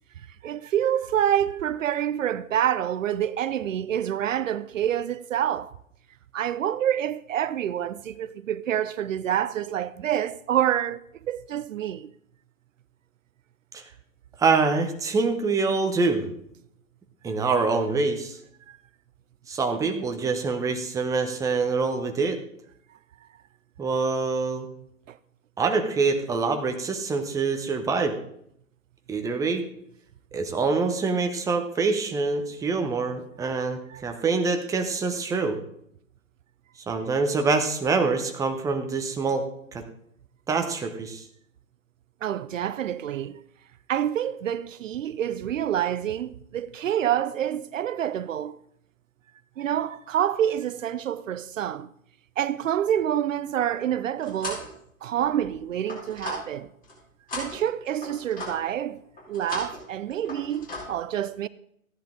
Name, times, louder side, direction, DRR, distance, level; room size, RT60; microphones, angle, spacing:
voice 1, 0.4-5.7 6.3-12.1 18.7-18.8 25.1-25.2 33.9-34.0 42.2-43.4 43.9-48.6 49.6-51.9 52.4-54.6 55.0-56.7 57.3-59.0 59.3-61.5, right 10 dB, 65° right, 0.6 m, -27 dB
voice 2, 14.4-16.3 17.2-18.4 19.5-22.4 23.8-24.7 25.6-28.2 29.1-29.6 30.3-35.6 36.9-39.4 39.7-39.8 40.5-41.2, right 4 dB, 10° right, 0.9 m, -25 dB
sound 1, 53.7-54.7 55.2-56.9 57.3-58.7 59.2-59.8 60.1-60.8, left 2 dB, 20° left, 4.4 m, -37 dB
14.0 x 10.5 x 3.7 m
hypercardioid pair, 120°, 42 cm